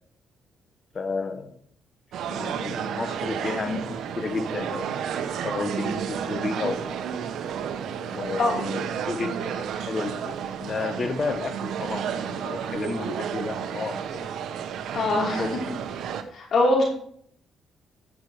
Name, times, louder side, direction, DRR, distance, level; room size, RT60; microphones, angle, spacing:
voice 1, 0.9-1.5 2.3-7.1 8.1-14.3 15.1-15.8, left 4 dB, 40° left, 9 dB, 1.4 m, -32 dB
sound 1, 2.1-16.2, right 8 dB, 75° right, 1.0 m, -31 dB
voice 2, 14.9-15.4 16.3-16.8, left 2 dB, 60° left, -3 dB, 5.6 m, -22 dB
11.0 x 7.6 x 5.0 m, 0.62 s
cardioid pair, 90°, 0 cm